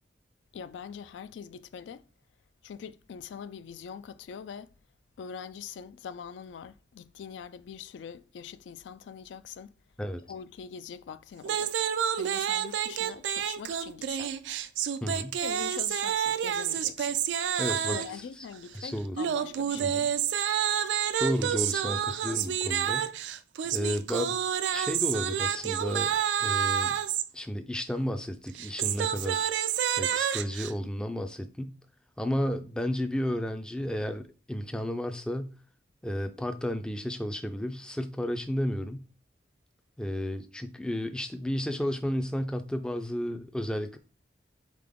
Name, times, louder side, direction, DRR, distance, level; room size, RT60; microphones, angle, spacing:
voice 1, 0.5-2.0 2.6-4.7 5.2-9.7 10.3-14.4 15.4-17.2 17.7-20.0, left 7 dB, 85° left, 0.3 m, -43 dB
sound 1, 11.4-18.2 19.2-27.3 28.5-30.7, right 9 dB, 80° right, 0.3 m, -29 dB
voice 2, 15.0-15.4 17.6-18.5 18.7-19.2 19.8-20.1 21.2-23.1 23.7-24.4 24.7-26.1 26.4-27.0 27.3-29.5 30.0-31.8 32.2-35.5 36.0-39.0 40.0-44.0, equal, 5° left, 0.3 m, -32 dB
3.7 x 3.7 x 3.5 m
head